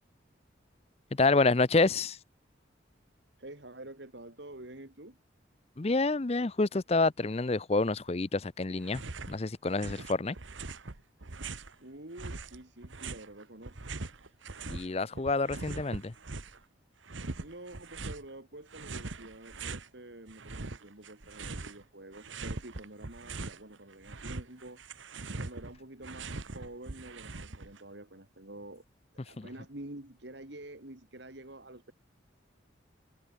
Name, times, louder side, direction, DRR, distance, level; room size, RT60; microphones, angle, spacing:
voice 1, 1.1-2.2 5.8-9.0 9.3-10.4 14.7-16.1 29.4-29.5, left 3 dB, 30° left, 0.6 m, -28 dB
voice 2, 3.4-5.2 11.8-13.8 17.4-25.0 25.3-28.8 29.3-31.9, right 1 dB, 60° right, 2.6 m, -48 dB
sound 1, 8.8-9.4 9.6-11.7 12.2-14.9 15.1-16.6 17.1-18.2 18.7-19.9 20.3-21.8 22.1-23.6 23.9-27.8, right 3 dB, 75° right, 1.4 m, -41 dB
head